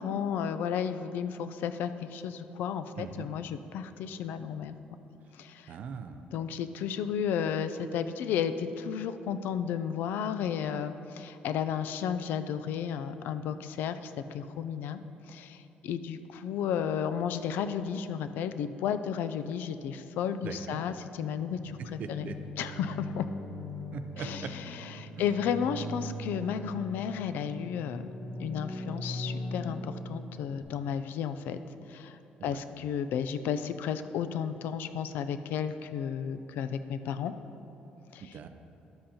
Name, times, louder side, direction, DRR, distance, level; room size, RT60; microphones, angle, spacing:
voice 1, 0.0-4.7 5.4-5.7 6.3-15.0 15.3-22.3 22.6-23.3 24.2-28.0 28.4-31.6 31.9-37.3 38.1-38.3, left 8 dB, 80° left, 11 dB, 0.4 m, -33 dB
voice 2, 3.0-3.3 5.7-6.3 20.4-20.8 21.8-22.4 23.9-24.5 25.2-25.3 32.4-32.6 38.2-38.5, right 6 dB, 50° right, 8 dB, 0.5 m, -40 dB
sound 1, 21.5-30.6, left 1 dB, 40° left, 1.3 m, -40 dB
12.0 x 7.6 x 2.8 m, 3.0 s
cardioid pair, 160°, 3 cm